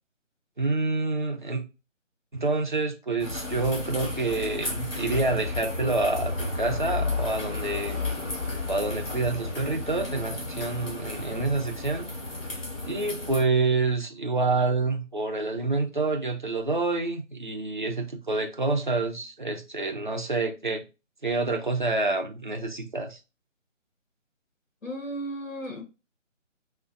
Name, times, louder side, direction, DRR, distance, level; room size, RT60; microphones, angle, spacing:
voice 1, 0.6-1.6 2.3-8.0 8.7-12.1 12.8-20.8 21.2-23.2, right 3 dB, 40° right, 0.5 m, -27 dB
sound 1, 3.2-13.4, left 3 dB, 50° left, 2.0 m, -33 dB
voice 2, 24.8-25.8, right 1 dB, 80° left, 1.1 m, -34 dB
5.1 x 2.1 x 2.5 m
figure-of-eight pair, 155°, 38 cm